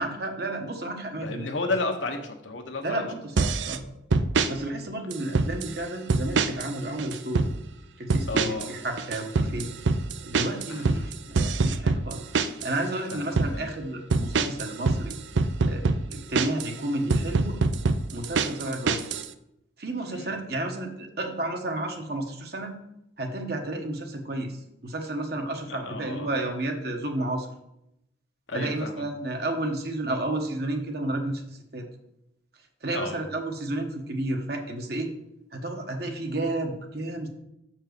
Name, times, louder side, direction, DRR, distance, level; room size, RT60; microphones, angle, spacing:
voice 1, 0.0-1.5 2.8-4.0 4.5-7.5 8.0-9.8 10.2-12.3 12.6-15.2 15.7-17.6 18.1-19.0 19.8-22.8 23.2-27.5 28.5-31.9 32.8-35.1 35.5-37.3, right 1 dB, 55° right, 3 dB, 1.2 m, -31 dB
voice 2, 1.2-3.0 8.3-8.8 9.3-9.5 10.7-10.9 13.1-13.7 20.1-20.4 25.7-26.3 28.5-29.0 32.9-33.2, left 3 dB, 85° left, 4 dB, 1.1 m, -33 dB
sound 1, 3.4-3.8 4.1-4.5 5.1-5.7 6.1-6.7 7.0-7.5 8.1-8.7 9.0-12.7 13.1-13.5 14.1-16.7 17.1-19.3, right 4 dB, 75° right, 0.5 m, -24 dB
7.0 x 4.5 x 6.7 m, 0.82 s
head